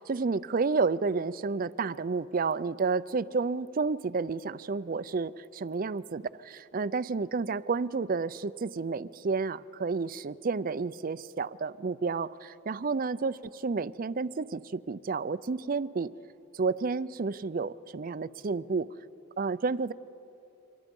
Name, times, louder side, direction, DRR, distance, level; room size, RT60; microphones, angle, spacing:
voice 1, 0.0-16.1 16.5-18.9 19.4-19.9, right 4 dB, 40° right, 17 dB, 0.4 m, -31 dB
29.0 x 25.0 x 5.3 m, 3.0 s
head